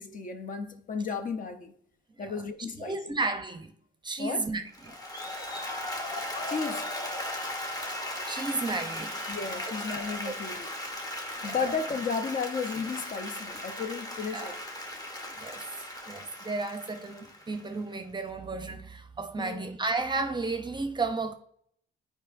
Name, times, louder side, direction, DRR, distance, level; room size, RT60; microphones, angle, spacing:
voice 1, 0.0-1.7 2.2-3.2 4.2-4.5 6.5-6.9 9.3-10.7 11.4-14.6 19.4-19.7, left 5 dB, 45° left, 0.6 m, -34 dB
voice 2, 2.8-3.7 4.0-5.0 8.3-9.2 9.6-9.9 10.2-10.3 11.4-11.7 14.3-14.6 15.4-15.6 16.1-21.3, right 3 dB, 20° right, 0.6 m, -33 dB
Applause, 4.7-17.9, left 1 dB, 20° left, 1.0 m, -37 dB
9.7 x 4.7 x 2.6 m
cardioid pair, 90°, 20 cm